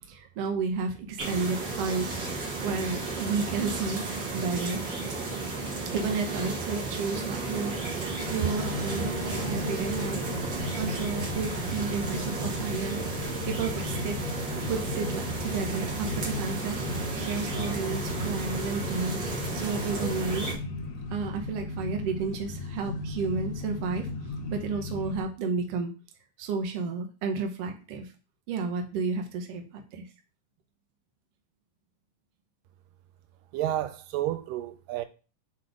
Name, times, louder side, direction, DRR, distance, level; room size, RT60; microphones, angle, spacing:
voice 1, 0.0-4.0 4.3-4.8 5.9-7.8 8.3-13.0 13.5-14.2 14.7-16.8 17.1-20.5 21.1-24.1 24.5-25.9 26.4-28.1 28.5-29.6 29.9-30.0, right 4 dB, 65° right, 1.6 m, -32 dB
sound 1, 1.2-20.5, right 3 dB, 45° right, 1.6 m, -33 dB
sound 2, 8.3-25.2, left 3 dB, 70° left, 2.1 m, -36 dB
voice 2, 33.5-35.1, right 13 dB, 85° right, 2.2 m, -30 dB
6.0 x 3.1 x 5.0 m
omnidirectional pair, 3.8 m